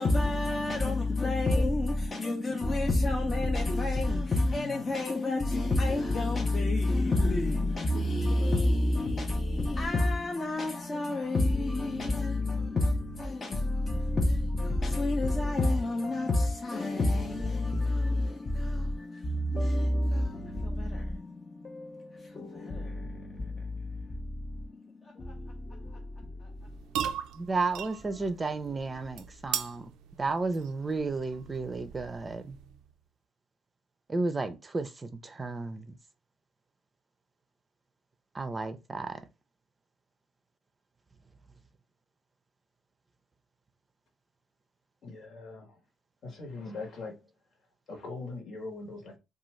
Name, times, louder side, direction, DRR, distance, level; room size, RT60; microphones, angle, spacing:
voice 1, 0.0-27.0 28.0-28.3, left 2 dB, 35° left, 0.6 m, -29 dB
sound 1, 26.5-32.9, right 9 dB, 85° right, 0.3 m, -39 dB
voice 2, 27.3-29.9 30.2-32.6 34.1-35.9 38.3-39.1, right 3 dB, 25° right, 0.5 m, -33 dB
voice 3, 45.0-45.8 46.2-47.2 47.9-49.2, left 3 dB, 65° left, 1.1 m, -41 dB
2.5 x 2.3 x 3.1 m
supercardioid pair, 75°, 0 cm